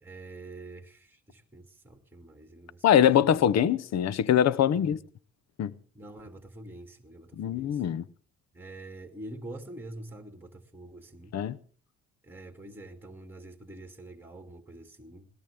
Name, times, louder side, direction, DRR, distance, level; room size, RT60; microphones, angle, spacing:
voice 1, 0.0-3.3 4.7-4.9 5.9-7.8 8.5-11.3 12.2-15.3, right 1 dB, 5° right, 2.5 m, -46 dB
voice 2, 2.8-5.0 5.6-5.7 7.4-8.0 11.3-11.6, left 9 dB, 60° left, 0.9 m, -23 dB
20.5 x 19.5 x 3.5 m
cardioid pair, 90°, 30 cm